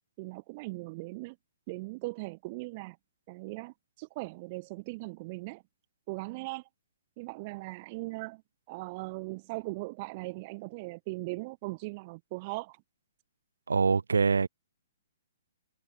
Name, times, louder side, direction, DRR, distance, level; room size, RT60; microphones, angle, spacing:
voice 1, 0.2-1.4 1.7-3.0 3.3-5.6 6.1-6.7 7.2-8.4 8.7-12.8, right 24 dB, 40° right, 3.9 m, -39 dB
voice 2, 13.7-14.5, right 5 dB, 80° right, 7.9 m, -24 dB
hypercardioid pair, 130°, 0 cm